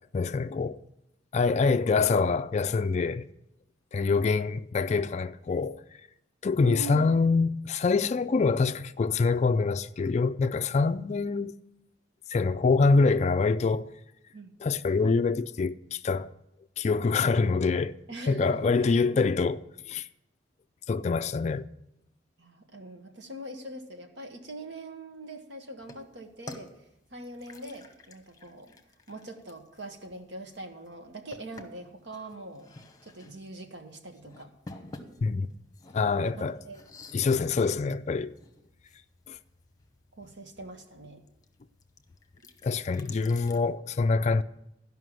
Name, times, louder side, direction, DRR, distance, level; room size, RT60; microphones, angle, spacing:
voice 1, 0.1-0.8 1.3-3.3 3.9-5.8 6.4-11.5 12.3-13.9 14.6-16.3 16.8-18.0 18.3-19.6 19.9-20.1 20.9-21.7 35.2-35.5 35.9-36.6 37.1-38.3 39.3-39.4 42.6-44.4, left 4 dB, 40° left, 0.3 m, -25 dB
voice 2, 6.6-7.1 14.3-14.5 18.1-19.2 22.4-26.7 27.1-28.7 29.1-32.7 33.0-34.5 36.2-36.8 40.1-41.2, right 1 dB, 70° right, 1.5 m, -42 dB
sound 1, 25.8-43.6, left 2 dB, 20° left, 1.0 m, -52 dB
13.0 x 5.6 x 7.6 m
head